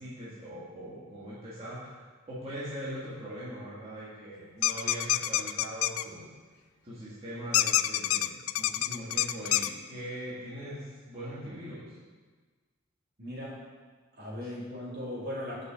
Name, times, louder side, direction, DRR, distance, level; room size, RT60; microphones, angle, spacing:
voice 1, 0.0-2.0 2.3-6.3 6.8-12.0, equal, 30° right, -10 dB, 1.8 m, -41 dB
sound 1, 4.6-6.0 7.5-9.7, left 14 dB, 75° left, 0.3 m, -27 dB
voice 2, 13.2-13.6 14.1-15.6, left 1 dB, 55° right, -7 dB, 2.9 m, -38 dB
6.1 x 6.0 x 6.8 m, 1.4 s
head